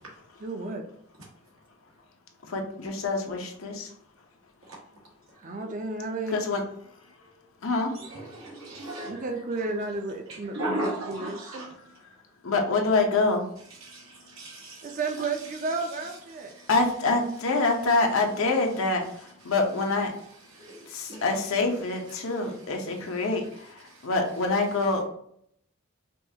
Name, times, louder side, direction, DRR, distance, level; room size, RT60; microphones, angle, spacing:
voice 1, 0.4-0.9 5.4-6.5 9.0-11.6 14.8-16.5, right 3 dB, 40° right, 4 dB, 0.5 m, -32 dB
voice 2, 2.5-3.9 6.3-6.6 7.6-7.9 12.4-13.4 16.7-19.0 19.4-20.1 20.9-23.5 24.0-25.0, left 3 dB, 85° left, 2 dB, 0.8 m, -25 dB
voice 3, 7.9-9.3 10.3-11.7 13.6-15.3 15.8-16.1 16.5-16.7 18.7-19.5 20.3-21.4 21.7-24.1, right 1 dB, 85° right, -4 dB, 1.2 m, -39 dB
5.2 x 2.4 x 2.8 m, 0.68 s
head